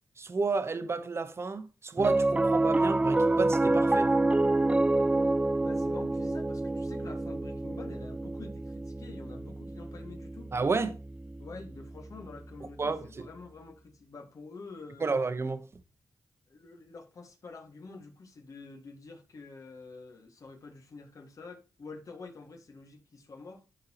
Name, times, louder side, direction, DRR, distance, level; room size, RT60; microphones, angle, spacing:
voice 1, 0.2-4.2 10.5-11.0 12.8-13.3 15.0-15.7, right 4 dB, 40° right, 1.1 m, -31 dB
Piano, 2.0-12.5, right 2 dB, 15° right, 0.3 m, -28 dB
voice 2, 5.6-10.5 11.4-15.1 16.5-23.6, left 4 dB, 55° left, 1.9 m, -47 dB
13.5 x 4.6 x 2.9 m
cardioid pair, 75°, 7 cm